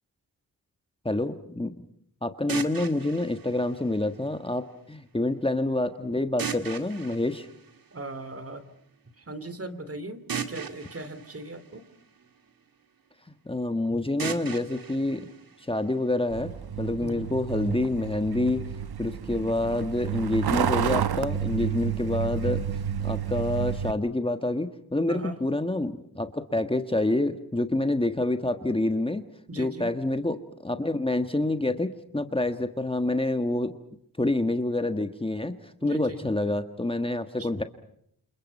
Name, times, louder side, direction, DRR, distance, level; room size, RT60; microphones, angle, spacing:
voice 1, 1.0-1.8 2.2-7.5 13.4-15.3 15.6-16.5 16.8-18.6 19.0-22.6 23.0-29.2 29.6-33.8 34.2-37.6, left 2 dB, 15° left, 8 dB, 1.5 m, -27 dB
sound 1, 2.5-4.5 6.4-8.4 10.3-12.5 14.2-16.2, right 7 dB, 65° right, 2.2 m, -38 dB
voice 2, 7.9-8.7 9.3-10.2 10.5-11.8 17.0-17.3 25.1-25.4 29.5-29.9 35.8-36.3 37.4-37.6, right 2 dB, 40° right, 12 dB, 3.0 m, -38 dB
Truck, 16.3-23.9, right 8 dB, 90° right, 1.0 m, -30 dB
29.0 x 28.5 x 5.4 m, 0.71 s
wide cardioid pair, 115°, 37 cm